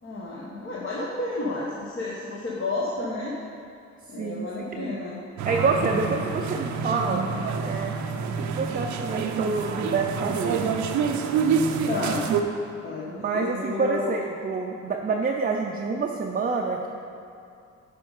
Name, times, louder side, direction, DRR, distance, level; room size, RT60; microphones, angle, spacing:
voice 1, 0.0-3.4 4.1-5.2 5.8-6.1 11.9-12.3 12.8-14.2, left 2 dB, 45° left, -5 dB, 1.1 m, -31 dB
voice 2, 4.2-5.0 5.4-7.3 7.6-7.9 8.4-10.7 13.1-16.9, right 4 dB, 30° right, 0 dB, 0.5 m, -27 dB
sound 1, 5.4-12.4, right 6 dB, 70° right, 0.6 m, -27 dB
7.8 x 5.2 x 4.8 m, 2.5 s
cardioid pair, 90°, 30 cm